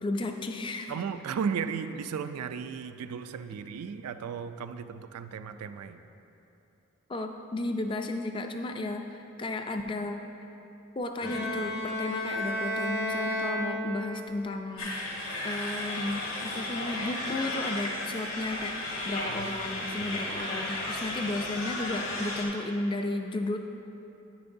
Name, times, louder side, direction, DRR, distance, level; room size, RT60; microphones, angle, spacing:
voice 1, 0.0-0.9 7.1-10.2 11.0-23.6, left 2 dB, 20° left, 5 dB, 0.3 m, -34 dB
voice 2, 0.9-6.0 19.2-20.2 20.6-20.9, right 6 dB, 85° right, 10 dB, 0.4 m, -36 dB
Bowed string instrument, 11.2-14.3, left 1 dB, 90° left, 1.6 m, -32 dB
sound 1, 14.8-22.4, left 2 dB, 65° left, 1.5 m, -34 dB
10.0 x 9.1 x 2.6 m, 3.0 s
head